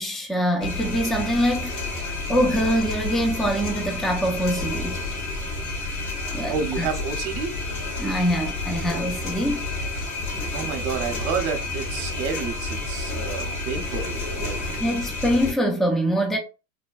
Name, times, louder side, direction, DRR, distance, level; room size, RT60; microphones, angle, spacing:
voice 1, 0.0-1.8 2.3-5.0 6.3-6.9 8.0-9.9 14.8-16.4, equal, ahead, 0.3 m, -24 dB
sound 1, 0.6-15.5, left 2 dB, 80° left, 1.4 m, -30 dB
voice 2, 6.5-7.8 10.5-14.6, right 6 dB, 45° right, 0.8 m, -30 dB
3.1 x 2.2 x 2.4 m
hypercardioid pair, 95°, 43 cm